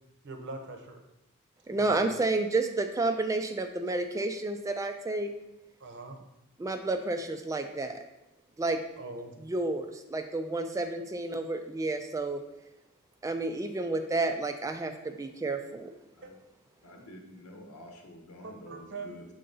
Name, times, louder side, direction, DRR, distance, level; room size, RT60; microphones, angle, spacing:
voice 1, 0.2-1.0 1.8-2.1 5.8-6.2 9.0-9.3 16.2-16.3 18.4-19.1, right 3 dB, 55° right, 5 dB, 0.8 m, -42 dB
voice 2, 1.7-5.3 6.6-8.0 8.6-8.8 9.4-12.4 13.2-15.9, right 2 dB, 15° right, 7 dB, 0.3 m, -30 dB
voice 3, 16.8-19.2, left 1 dB, 80° left, 2 dB, 1.1 m, -48 dB
6.6 x 3.8 x 3.9 m, 0.95 s
head